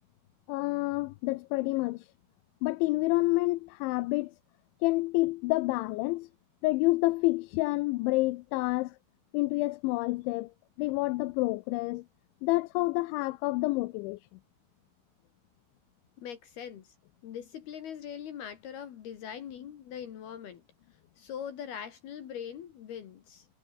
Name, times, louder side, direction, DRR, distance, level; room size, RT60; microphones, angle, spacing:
voice 1, 0.5-2.0 2.6-4.3 4.8-6.3 6.6-8.9 9.3-10.5 10.8-12.0 12.4-14.2, left 21 dB, 85° left, 3.0 m, -28 dB
voice 2, 16.2-16.9 17.2-20.6 21.2-23.5, left 9 dB, 60° left, 3.6 m, -41 dB
omnidirectional pair, 5.4 m